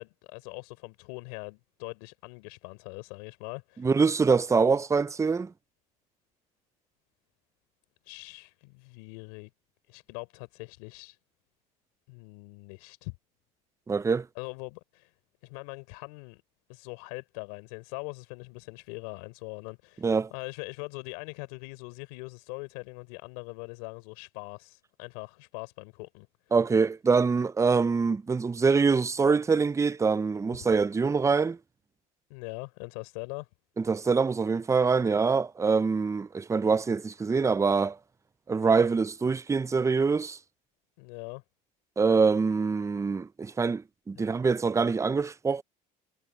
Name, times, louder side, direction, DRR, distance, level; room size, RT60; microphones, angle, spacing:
voice 1, 0.0-3.9 4.6-4.8 8.1-9.5 9.9-11.2 12.1-13.2 14.4-15.1 15.4-16.4 16.7-26.3 32.3-33.5 41.0-41.4, left 31 dB, 80° left, 3.7 m, -42 dB
voice 2, 3.8-5.5 13.9-14.3 20.0-20.3 26.5-31.6 33.8-38.0 38.5-40.4 42.0-45.6, right 5 dB, 15° right, 0.6 m, -24 dB
supercardioid pair, 85°, 19 cm